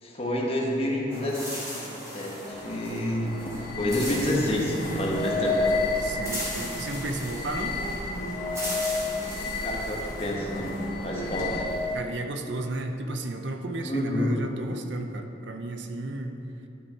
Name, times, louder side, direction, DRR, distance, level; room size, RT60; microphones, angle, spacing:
voice 1, 0.0-1.9 2.1-3.5 3.8-5.6 9.6-11.6 13.8-14.4, left 1 dB, 30° left, -2 dB, 1.2 m, -29 dB
sound 1, 1.1-11.5, equal, 15° right, 2.3 m, -38 dB
sound 2, 2.4-12.1, left 3 dB, 45° left, 1.7 m, -31 dB
voice 2, 6.0-7.8 11.9-16.4, right 2 dB, 70° right, 5 dB, 0.6 m, -33 dB
11.5 x 5.8 x 4.5 m, 2.9 s
head